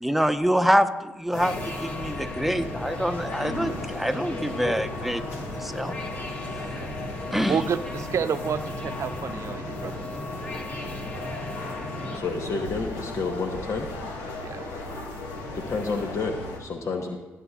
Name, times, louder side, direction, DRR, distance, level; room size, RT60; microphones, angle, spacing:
voice 1, 0.0-6.0 7.3-7.6, equal, ahead, 7 dB, 0.9 m, -26 dB
sound 1, 1.3-16.6, left 2 dB, 85° left, 1.7 m, -36 dB
sound 2, 1.3-12.2, left 2 dB, 25° left, 2.2 m, -36 dB
voice 2, 7.4-10.0 14.4-14.7, right 7 dB, 60° right, 11 dB, 0.7 m, -29 dB
voice 3, 12.1-13.9 15.5-17.2, left 4 dB, 55° left, 3 dB, 1.0 m, -30 dB
18.0 x 8.3 x 2.4 m, 1.2 s
hypercardioid pair, 45°, 6 cm